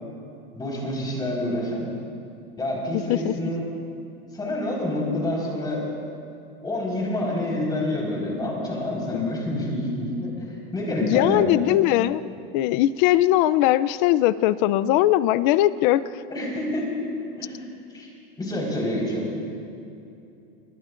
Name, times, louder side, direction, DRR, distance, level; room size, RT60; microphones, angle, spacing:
voice 1, 0.5-1.9 2.6-3.6 4.3-5.9 6.6-11.5 16.3-16.9 17.4-17.6 17.9-18.1 18.4-19.3, left 1 dB, 15° left, -3 dB, 4.5 m, -27 dB
voice 2, 2.9-3.3 9.1-9.3 11.0-12.2 12.5-16.2, left 14 dB, 55° left, 17 dB, 0.5 m, -20 dB
23.0 x 20.5 x 2.6 m, 2.7 s
supercardioid pair, 145°, 29 cm